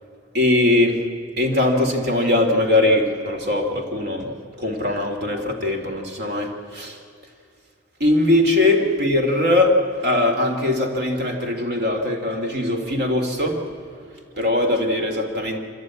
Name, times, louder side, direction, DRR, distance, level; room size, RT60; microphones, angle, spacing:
voice 1, 0.3-1.0 1.4-7.0 8.0-13.7 14.4-15.6, left 1 dB, 55° right, 4 dB, 2.6 m, -21 dB
25.0 x 14.5 x 9.6 m, 2.3 s
head